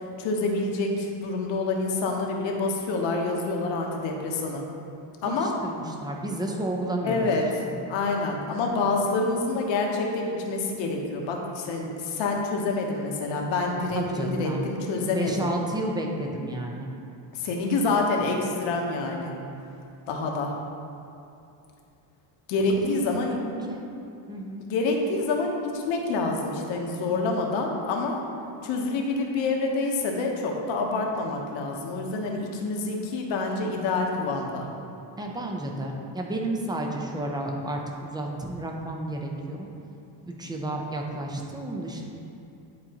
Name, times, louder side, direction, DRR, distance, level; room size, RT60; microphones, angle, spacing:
voice 1, 0.2-4.6 5.2-5.5 7.0-7.4 7.9-15.5 17.3-19.3 20.1-20.5 22.5-23.4 24.6-28.2 28.6-34.7, left 3 dB, 70° left, 1 dB, 1.1 m, -27 dB
voice 2, 5.2-7.3 7.6-7.7 13.9-14.7 15.1-16.9 22.8-23.9 24.3-24.6 35.2-39.7 40.3-42.1, right 1 dB, 10° right, 1 dB, 0.6 m, -31 dB
10.5 x 4.3 x 2.9 m, 2.7 s
cardioid pair, 135°, 46 cm